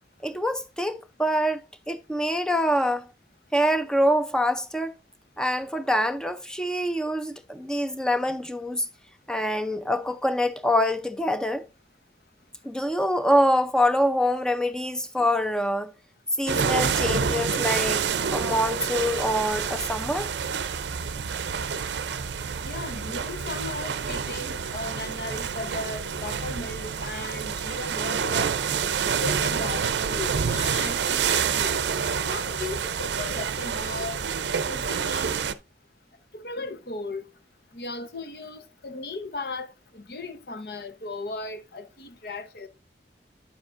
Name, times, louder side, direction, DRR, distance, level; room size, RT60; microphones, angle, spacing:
voice 1, 0.2-3.1 3.5-4.9 5.4-8.9 9.3-11.7 12.6-15.9 16.4-20.3, equal, 5° left, 0.5 m, -25 dB
sound 1, 16.5-35.5, right 6 dB, 80° right, 0.5 m, -28 dB
voice 2, 22.6-28.5 29.0-31.8 32.1-34.2 34.7-35.3 36.3-37.3 37.7-42.7, left 3 dB, 60° left, 0.8 m, -36 dB
9.2 x 7.4 x 2.5 m
head